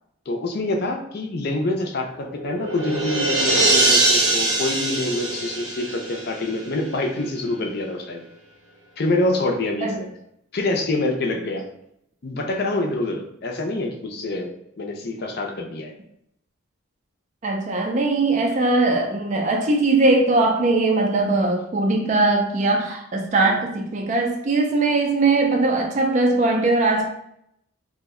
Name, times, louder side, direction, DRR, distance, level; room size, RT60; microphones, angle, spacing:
voice 1, 0.3-8.2 9.0-10.1 10.5-11.6 12.2-15.9, left 2 dB, 50° left, 2 dB, 0.5 m, -26 dB
sound 1, 2.1-6.7, right 2 dB, 80° right, 0.7 m, -22 dB
voice 2, 17.4-27.1, right 2 dB, 35° right, 2 dB, 0.3 m, -20 dB
2.6 x 2.1 x 3.6 m, 0.75 s
head